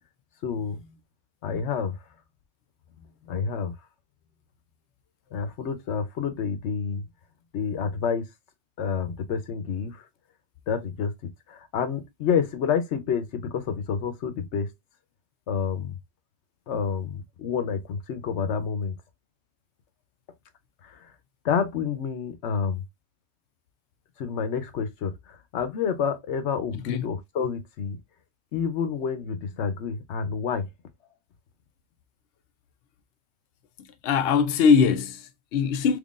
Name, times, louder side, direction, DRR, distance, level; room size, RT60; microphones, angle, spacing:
voice 1, 0.4-0.9 1.4-2.0 3.3-3.7 5.3-7.0 7.5-8.3 8.8-10.0 10.7-11.1 11.5-14.7 15.5-15.9 16.7-18.9 20.8-21.0 21.4-22.8 24.2-28.0 28.5-30.7, left 6 dB, 85° left, 1.1 m, -28 dB
voice 2, 26.7-27.1 33.8-36.0, left 6 dB, 65° left, 0.7 m, -22 dB
3.7 x 3.2 x 2.4 m
omnidirectional pair, 1.1 m